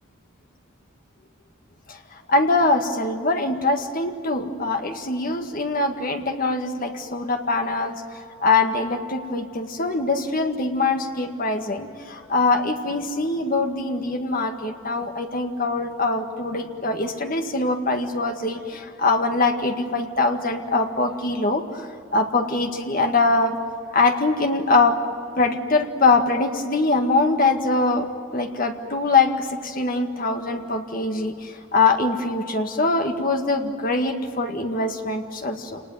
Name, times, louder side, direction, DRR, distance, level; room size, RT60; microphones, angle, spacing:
voice 1, 2.3-8.0 8.4-21.9 22.1-23.6 23.9-25.0 25.4-35.8, left 3 dB, 45° left, 5 dB, 1.9 m, -23 dB
28.0 x 19.5 x 9.3 m, 2.6 s
head